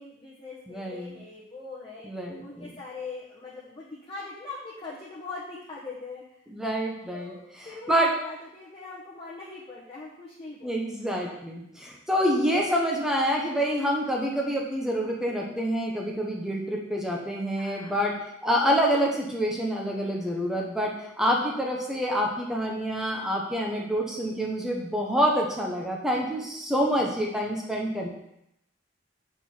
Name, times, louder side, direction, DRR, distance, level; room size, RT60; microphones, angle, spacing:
voice 1, 0.0-2.1 2.4-6.2 7.1-8.0 8.2-10.7 17.6-18.0 19.9-20.4, left 3 dB, 30° left, -6 dB, 1.1 m, -42 dB
voice 2, 0.7-1.2 2.0-2.7 6.5-7.3 7.9-8.2 10.6-28.1, equal, 5° right, -1 dB, 0.9 m, -27 dB
7.4 x 4.8 x 4.4 m, 0.80 s
head